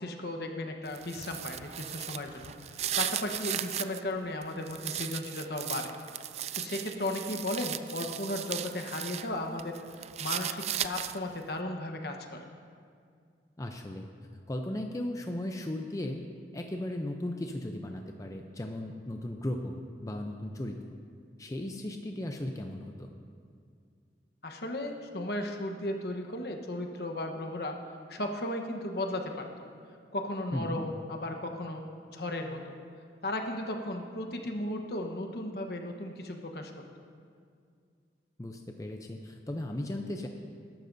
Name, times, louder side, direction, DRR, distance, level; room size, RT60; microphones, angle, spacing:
voice 1, 0.0-5.9 6.6-9.8 10.2-12.4 24.4-27.7 28.1-29.7 30.1-31.9 32.1-32.8 33.2-36.7, left 1 dB, 65° left, 3 dB, 1.1 m, -35 dB
sound 1, 0.9-4.0 4.4-9.3 9.6-11.4, right 11 dB, 35° right, 0.3 m, -36 dB
voice 2, 13.6-14.1 14.5-16.3 16.5-20.8 21.4-23.1 30.5-30.8 38.4-40.3, left 1 dB, 20° left, 3 dB, 0.5 m, -36 dB
21.0 x 11.5 x 2.7 m, 2.2 s
head